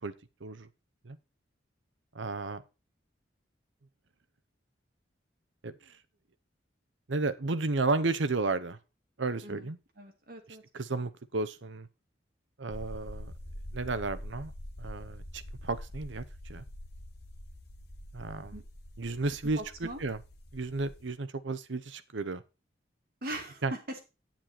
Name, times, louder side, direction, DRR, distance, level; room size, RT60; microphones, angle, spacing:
voice 1, 2.1-2.6 5.6-5.9 7.1-8.8 9.2-9.8 10.7-11.9 12.6-13.3 13.7-14.5 14.8-16.6 18.1-18.6 19.0-20.2 20.5-22.4 23.6-23.7, right 3 dB, 80° right, 13 dB, 0.9 m, -33 dB
voice 2, 10.0-10.6 18.5-18.6 19.6-20.0 23.2-24.0, right 1 dB, 55° right, 3 dB, 2.2 m, -40 dB
sound 1, 12.7-21.1, left 1 dB, 60° left, 1.3 m, -45 dB
9.3 x 7.5 x 4.3 m, 0.30 s
head